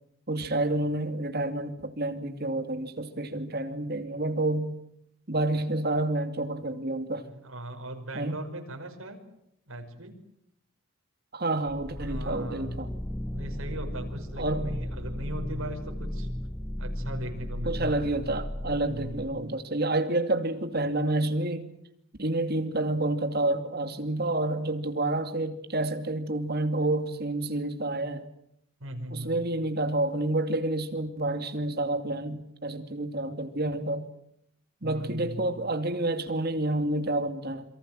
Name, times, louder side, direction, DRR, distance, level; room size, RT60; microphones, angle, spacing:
voice 1, 0.3-4.8 5.3-7.3 8.1-8.4 11.3-12.9 14.4-14.8 17.6-21.6 22.2-28.3 29.1-34.1 34.8-37.6, right 2 dB, 45° right, 7 dB, 2.6 m, -29 dB
voice 2, 7.2-9.2 9.7-10.2 12.0-12.9 13.3-16.3 16.8-18.2 18.8-19.5 28.8-29.4 34.8-35.5, right 1 dB, 70° right, 3 dB, 5.5 m, -39 dB
sound 1, 11.7-19.5, left 1 dB, 10° left, 1.0 m, -35 dB
27.5 x 23.5 x 7.7 m, 0.75 s
head